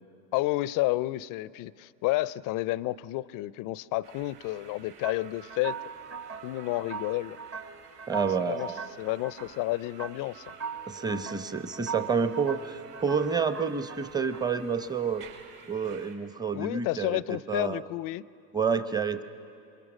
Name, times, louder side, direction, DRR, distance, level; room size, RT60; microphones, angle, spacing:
voice 1, 0.3-5.8 6.4-7.4 8.4-8.7 9.0-10.4 16.5-18.2, left 17 dB, 45° left, 20 dB, 0.5 m, -30 dB
sound 1, 4.0-16.1, right 6 dB, 50° right, 4.2 m, -52 dB
sound 2, 5.0-14.9, right 6 dB, 30° right, 1.1 m, -41 dB
voice 2, 8.1-8.8 10.9-15.3 15.7-17.8 18.5-19.2, right 5 dB, 10° right, 11 dB, 0.8 m, -29 dB
27.5 x 23.0 x 6.2 m, 2.5 s
hypercardioid pair, 85°, 47 cm